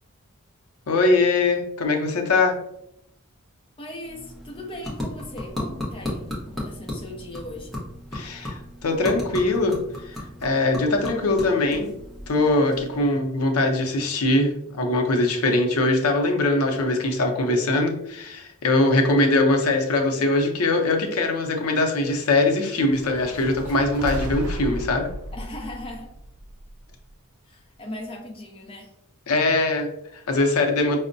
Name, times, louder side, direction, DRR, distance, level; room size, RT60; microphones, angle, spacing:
voice 1, 0.9-2.6 8.1-11.9 12.3-25.1 29.3-31.0, left 2 dB, 90° left, 4 dB, 0.6 m, -22 dB
voice 2, 3.8-7.7 25.3-26.1 27.4-28.9, left 1 dB, 25° left, -1 dB, 0.6 m, -38 dB
sound 1, 3.9-13.3, left 1 dB, ahead, 0.8 m, -35 dB
sound 2, 22.9-27.1, right 1 dB, 75° right, 0.4 m, -34 dB
5.2 x 2.1 x 2.5 m, 0.79 s
head